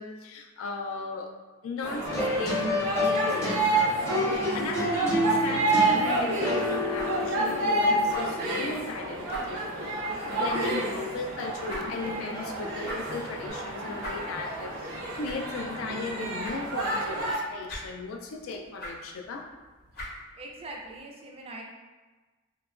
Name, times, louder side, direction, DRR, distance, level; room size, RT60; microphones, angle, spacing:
voice 1, 0.0-1.4 1.6-19.5, left 3 dB, 75° left, 3 dB, 0.3 m, -37 dB
sound 1, 1.8-17.4, right 2 dB, 90° right, 0.5 m, -29 dB
sound 2, 2.0-8.8 13.4-13.5, left 1 dB, 15° left, 0.7 m, -29 dB
sound 3, 6.6-21.0, equal, 50° left, 0.7 m, -45 dB
voice 2, 20.4-21.6, right 2 dB, 30° right, 0 dB, 0.3 m, -42 dB
2.8 x 2.2 x 2.4 m, 1.3 s
head